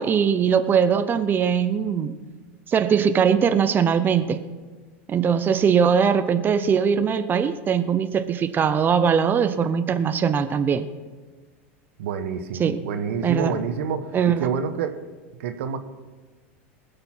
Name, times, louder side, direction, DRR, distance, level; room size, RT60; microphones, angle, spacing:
voice 1, 0.0-2.1 2.7-4.4 5.1-10.9 12.6-12.8 13.2-13.5 14.1-14.5, right 7 dB, 30° right, 10 dB, 0.7 m, -21 dB
voice 2, 12.0-15.0 15.4-15.8, right 6 dB, 75° right, 9 dB, 1.1 m, -28 dB
20.0 x 6.9 x 5.8 m, 1.4 s
hypercardioid pair, 100°, 7 cm